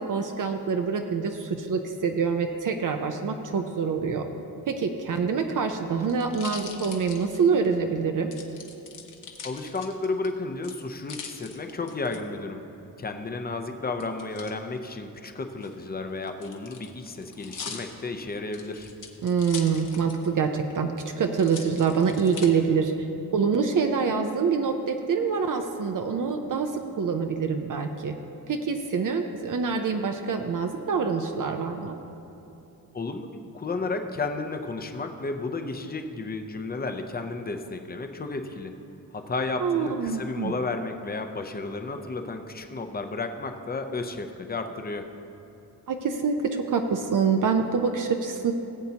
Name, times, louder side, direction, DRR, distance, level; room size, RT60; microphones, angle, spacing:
voice 1, 0.0-4.2 4.7-8.3 19.2-23.1 23.3-26.7 27.0-28.2 28.5-32.0 39.6-40.5 45.9-48.5, right 5 dB, 60° right, 5 dB, 0.6 m, -26 dB
sound 1, 5.4-7.8 8.3-10.3 10.6-12.2 14.0-14.5 15.5-20.4 20.7-20.8 21.4-22.5 23.1-23.6, left 5 dB, 60° left, 1.1 m, -42 dB
voice 2, 9.4-12.6 13.0-18.9 32.9-38.8 39.1-45.1, left 3 dB, 25° left, 6 dB, 0.6 m, -32 dB
18.5 x 8.2 x 2.9 m, 2.9 s
wide cardioid pair, 150°, 36 cm